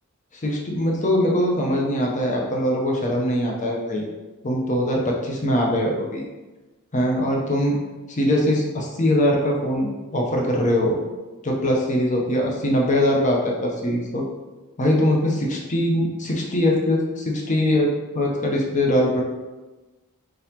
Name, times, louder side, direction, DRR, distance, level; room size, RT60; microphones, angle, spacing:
voice 1, 0.4-4.0 4.4-6.3 6.9-7.8 8.1-11.0 11.4-14.2 14.8-19.2, left 1 dB, 35° left, -1 dB, 0.7 m, -22 dB
3.9 x 3.8 x 2.9 m, 1.2 s
head